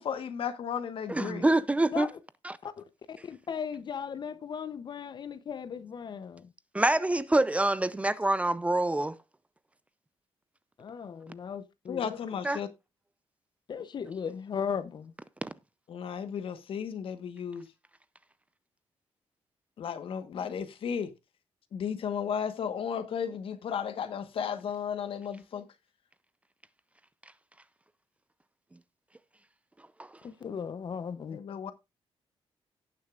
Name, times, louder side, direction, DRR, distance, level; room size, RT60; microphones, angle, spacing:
voice 1, 0.0-1.4 11.9-12.7 15.9-17.7 19.8-21.1 21.7-25.6 31.3-31.7, left 7 dB, 65° left, 1.3 m, -34 dB
voice 2, 1.1-2.1 2.4-2.6 6.7-9.2 12.4-12.6 15.4-15.5 30.0-30.1, right 2 dB, 15° right, 0.5 m, -26 dB
voice 3, 2.6-6.5 10.8-12.2 13.7-15.1 30.2-31.4, left 7 dB, 50° left, 0.7 m, -37 dB
17.5 x 6.5 x 2.4 m
cardioid pair, 110°, 10 cm